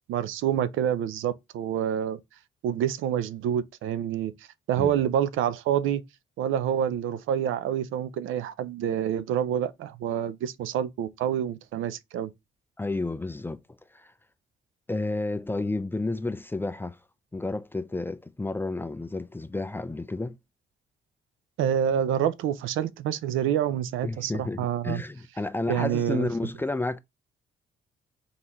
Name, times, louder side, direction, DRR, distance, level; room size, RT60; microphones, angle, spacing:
voice 1, 0.0-2.2 2.6-4.3 4.7-6.0 6.4-12.3 21.6-25.0 25.7-26.3, right 9 dB, 85° right, 0.5 m, -27 dB
voice 2, 12.8-13.6 13.9-14.1 14.9-17.0 17.3-20.4 24.0-27.0, left 2 dB, 10° left, 0.4 m, -31 dB
3.9 x 3.9 x 3.0 m
cardioid pair, 90°, 20 cm